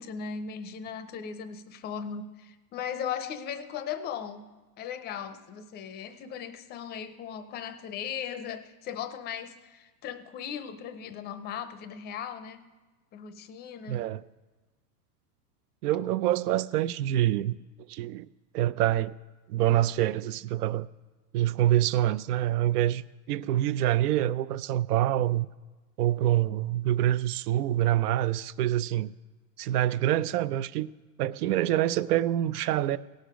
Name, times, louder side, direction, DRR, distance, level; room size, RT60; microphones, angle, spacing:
voice 1, 0.0-4.5 4.8-12.6 13.1-14.0, left 7 dB, 20° left, 0.5 m, -37 dB
voice 2, 13.9-14.2 15.8-17.6 17.9-18.3 18.5-19.2 19.5-20.9 21.3-23.0 23.3-25.5 26.0-29.1 29.6-30.9 31.2-33.0, right 13 dB, 70° right, 0.6 m, -26 dB
17.0 x 6.6 x 5.1 m
hypercardioid pair, 125°, 49 cm